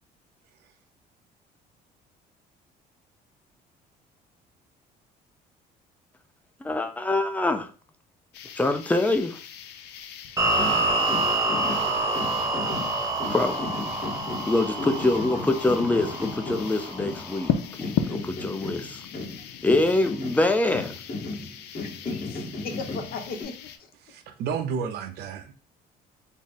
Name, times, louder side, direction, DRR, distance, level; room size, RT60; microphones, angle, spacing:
voice 1, 6.6-7.7 8.6-9.4 13.3-13.8 14.5-17.5 17.8-19.0 19.6-20.9, left 2 dB, 10° left, 0.4 m, -24 dB
sound 1, 8.3-23.8, left 8 dB, 85° left, 0.5 m, -37 dB
sound 2, 10.4-17.5, right 2 dB, 15° right, 0.9 m, -27 dB
sound 3, 10.5-17.5 17.8-23.4, left 2 dB, 40° left, 1.9 m, -35 dB
voice 2, 21.8-23.9, left 4 dB, 60° left, 0.8 m, -37 dB
voice 3, 24.0-25.5, right 6 dB, 75° right, 0.6 m, -31 dB
3.5 x 2.0 x 4.0 m
cardioid pair, 110°, 17 cm